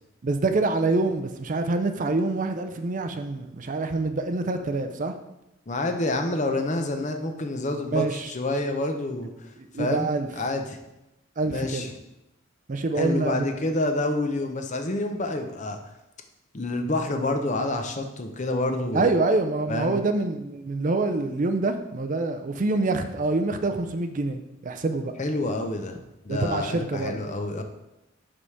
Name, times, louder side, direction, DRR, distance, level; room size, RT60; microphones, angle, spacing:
voice 1, 0.2-5.2 7.9-8.3 9.6-10.3 11.4-11.9 12.7-13.4 18.9-25.1 26.3-27.2, right 3 dB, 40° right, 7 dB, 0.4 m, -26 dB
voice 2, 5.7-9.3 9.8-10.1 10.4-10.8 11.5-11.9 13.0-15.8 16.5-19.1 19.7-20.0 25.2-27.6, left 2 dB, 35° left, 5 dB, 0.6 m, -28 dB
5.1 x 4.8 x 5.7 m, 0.91 s
head